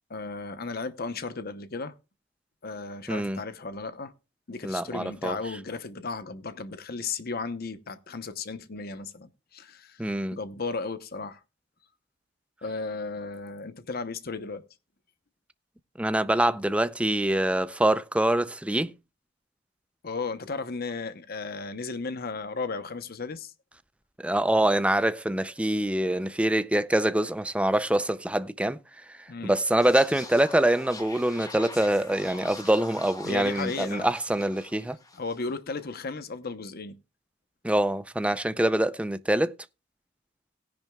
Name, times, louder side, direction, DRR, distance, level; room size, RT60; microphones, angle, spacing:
voice 1, 0.1-1.9 2.6-4.1 4.5-10.0 10.3-11.4 12.6-14.6 20.0-23.5 29.3-29.5 33.2-34.1 35.1-37.0, left 4 dB, 50° left, 0.9 m, -35 dB
voice 2, 3.1-3.4 4.6-5.4 10.0-10.4 16.0-18.9 24.2-28.8 29.4-35.0 37.6-39.5, right 1 dB, 5° right, 0.5 m, -25 dB
sound 1, 29.8-35.5 35.8-36.0, left 3 dB, 20° left, 1.4 m, -44 dB
17.5 x 10.5 x 2.3 m
head